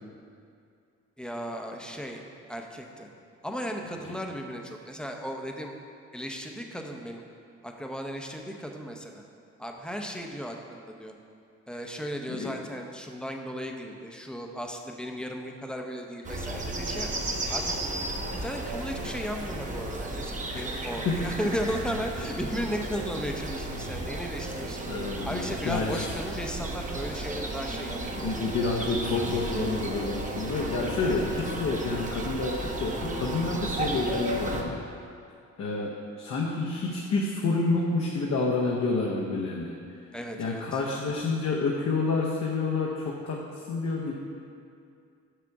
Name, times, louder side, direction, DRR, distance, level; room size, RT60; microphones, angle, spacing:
voice 1, 1.2-2.2 2.5-3.1 3.4-5.7 6.1-7.2 7.6-9.2 9.6-11.1 11.7-17.1 17.5-17.7 18.3-24.8 25.2-28.5 40.1-40.8, equal, 5° left, 2 dB, 0.7 m, -35 dB
sound 1, 16.2-34.6, right 2 dB, 25° right, 0.8 m, -34 dB
voice 2, 24.9-26.1 28.2-34.7 35.6-39.7 40.4-43.4 43.7-44.1, left 3 dB, 60° left, -3 dB, 0.9 m, -29 dB
6.2 x 5.9 x 4.7 m, 2.4 s
cardioid pair, 90°, 30 cm